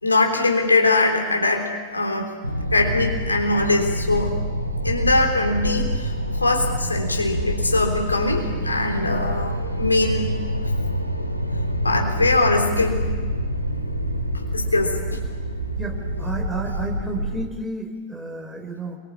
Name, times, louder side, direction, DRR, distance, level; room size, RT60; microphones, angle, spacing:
voice 1, 0.0-2.3 2.7-4.4 4.8-6.1 6.4-10.4 11.8-13.1 14.3-15.2, left 2 dB, 80° left, 3 dB, 3.6 m, -22 dB
sound 1, 2.4-17.4, equal, 90° right, 1.9 m, -26 dB
voice 2, 15.8-19.0, right 3 dB, 5° right, 2 dB, 4.9 m, -31 dB
27.5 x 23.5 x 8.7 m, 1.3 s
figure-of-eight pair, 90°, 0 cm